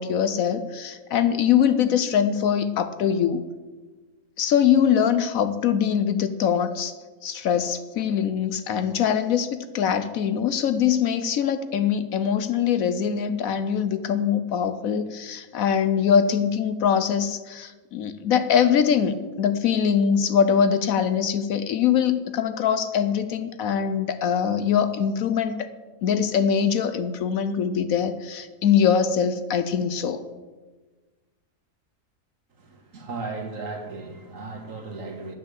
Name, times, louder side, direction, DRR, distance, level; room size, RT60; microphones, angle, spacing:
voice 1, 0.0-3.5 4.4-6.9 7.2-25.7 26.0-30.2, left 8 dB, 70° left, 11 dB, 1.0 m, -23 dB
voice 2, 32.6-35.3, right 3 dB, 55° right, 3 dB, 1.9 m, -36 dB
10.0 x 5.9 x 8.5 m, 1.3 s
omnidirectional pair, 1.6 m